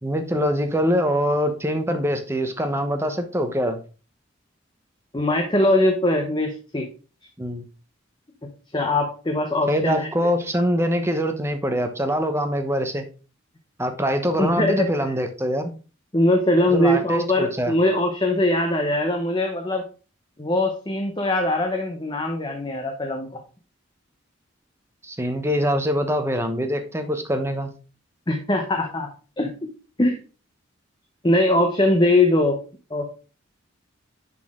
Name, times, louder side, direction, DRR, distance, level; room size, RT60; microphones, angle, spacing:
voice 1, 0.0-3.8 7.4-7.6 9.7-13.0 13.8-15.7 16.7-17.7 25.0-27.7, equal, 15° right, 6 dB, 1.0 m, -24 dB
voice 2, 5.1-6.9 8.7-10.1 14.4-14.9 16.1-19.8 20.4-23.4 28.3-29.1 29.4-29.5 30.0-30.2 31.2-32.6 32.9-33.1, left 1 dB, 25° left, 3 dB, 0.9 m, -21 dB
10.5 x 4.1 x 3.7 m, 0.35 s
head